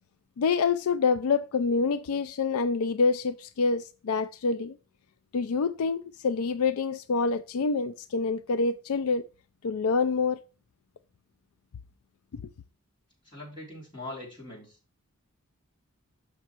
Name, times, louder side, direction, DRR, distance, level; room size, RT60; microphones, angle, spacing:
voice 1, 0.4-4.8 5.3-9.2 9.6-10.4, left 4 dB, 75° left, 0.4 m, -26 dB
voice 2, 13.2-14.8, left 2 dB, 20° left, 3.6 m, -41 dB
6.3 x 5.9 x 4.5 m
head